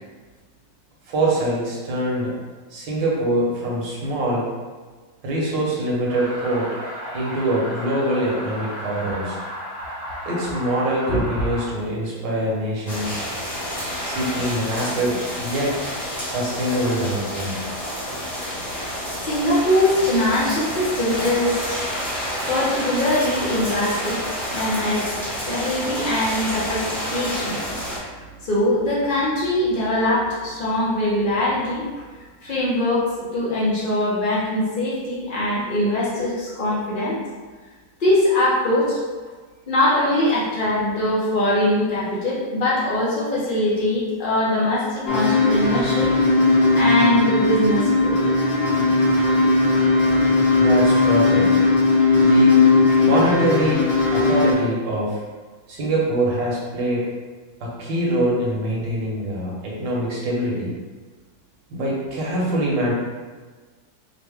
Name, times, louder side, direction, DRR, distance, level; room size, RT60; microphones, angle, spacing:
voice 1, 1.1-2.3 2.7-4.4 5.2-6.7 7.1-9.4 10.2-13.2 14.0-15.8 16.2-17.6 50.6-51.5 52.2-52.6 53.0-55.2 55.7-57.1 57.6-60.7 61.7-62.9, right 1 dB, 75° right, -4 dB, 1.7 m, -24 dB
sound 1, 6.1-11.7, equal, 60° right, 0.6 m, -34 dB
sound 2, 12.9-28.0, equal, 25° left, 1.1 m, -29 dB
voice 2, 18.5-18.9 19.2-21.9 22.5-27.7 28.4-31.9 32.4-37.2 38.0-39.0 39.7-46.1 46.7-48.2, left 1 dB, 70° left, -7 dB, 0.4 m, -22 dB
sound 3, 45.1-54.5, left 3 dB, 90° left, 1.6 m, -18 dB
5.1 x 2.1 x 3.4 m, 1.4 s
omnidirectional pair, 2.0 m